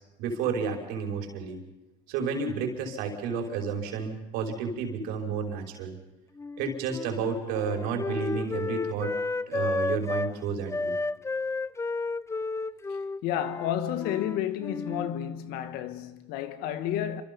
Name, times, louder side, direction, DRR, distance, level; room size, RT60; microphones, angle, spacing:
voice 1, 0.2-1.6 2.1-5.9 6.6-9.2 9.5-10.9, right 5 dB, 75° right, 5.7 m, -31 dB
Wind instrument woodwind instrument, 6.4-10.3 10.7-15.1, left 3 dB, 15° left, 0.7 m, -32 dB
voice 2, 13.2-17.2, left 10 dB, 75° left, 2.0 m, -31 dB
28.0 x 26.5 x 5.6 m
supercardioid pair, 85°, 16 cm